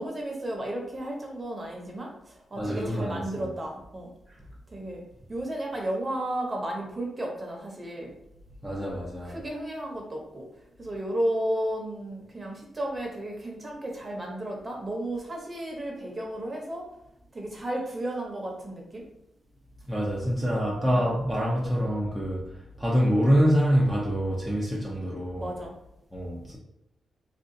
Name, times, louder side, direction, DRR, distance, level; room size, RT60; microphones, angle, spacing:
voice 1, 0.0-4.1 4.7-5.0 5.3-8.1 9.3-10.5 10.8-16.9 17.3-19.0 20.7-20.8 25.4-25.7, right 1 dB, 25° right, 0.8 m, -33 dB
voice 2, 2.6-3.5 8.6-9.4 19.9-25.5 26.1-26.6, equal, 5° left, 0.5 m, -26 dB
3.7 x 2.4 x 2.6 m
wide cardioid pair, 125°, 0 cm